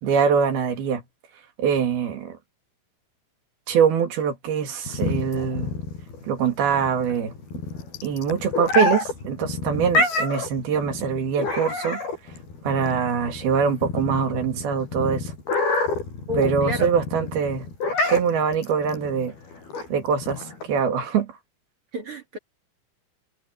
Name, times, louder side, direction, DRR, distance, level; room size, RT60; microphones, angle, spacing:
voice 1, 0.0-1.0 1.6-2.3 3.7-5.7 6.2-7.3 8.0-12.0 12.6-15.3 16.4-17.7 18.1-19.4 19.9-21.3, right 6 dB, 85° right, 4.3 m, -23 dB
sound 1, 4.9-20.8, left 3 dB, 85° left, 9.4 m, -28 dB
voice 2, 16.3-17.0 21.9-22.4, equal, 40° right, 3.0 m, -30 dB
omnidirectional pair, 4.3 m